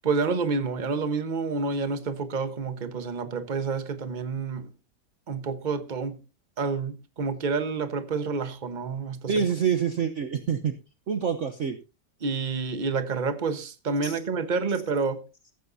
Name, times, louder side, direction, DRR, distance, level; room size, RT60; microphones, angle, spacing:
voice 1, 0.0-4.7 5.3-6.2 6.6-9.5 12.2-15.2, right 4 dB, 30° right, 1.2 m, -29 dB
voice 2, 9.3-10.7 11.1-11.8 14.0-14.2, right 7 dB, 50° right, 1.1 m, -26 dB
14.5 x 14.5 x 2.7 m
omnidirectional pair, 1.8 m